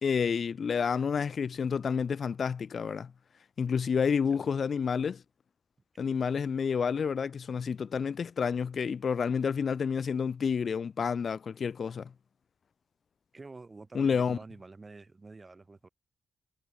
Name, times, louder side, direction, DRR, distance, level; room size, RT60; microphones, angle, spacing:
voice 1, 0.0-3.1 3.6-5.2 6.0-12.1 13.9-14.4, left 6 dB, 45° left, 0.6 m, -29 dB
voice 2, 13.3-15.9, right 3 dB, 20° right, 3.2 m, -48 dB
wide cardioid pair, 155°, 0 cm